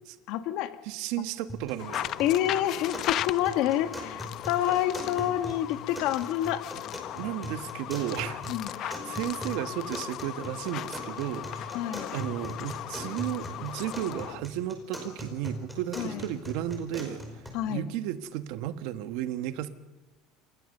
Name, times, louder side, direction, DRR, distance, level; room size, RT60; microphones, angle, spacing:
voice 1, 0.3-0.8 2.2-6.6 8.5-8.7 11.7-12.1 16.0-16.3 17.5-17.9, left 12 dB, 60° left, 1.5 m, -28 dB
voice 2, 0.8-2.1 7.1-8.4 8.8-11.8 12.1-17.4 17.7-19.7, right 12 dB, 65° right, 1.4 m, -34 dB
sound 1, 1.5-17.5, equal, ahead, 5.0 m, -41 dB
sound 2, 1.8-14.4, left 12 dB, 45° left, 0.6 m, -37 dB
28.0 x 15.0 x 6.8 m
cardioid pair, 155°, 0 cm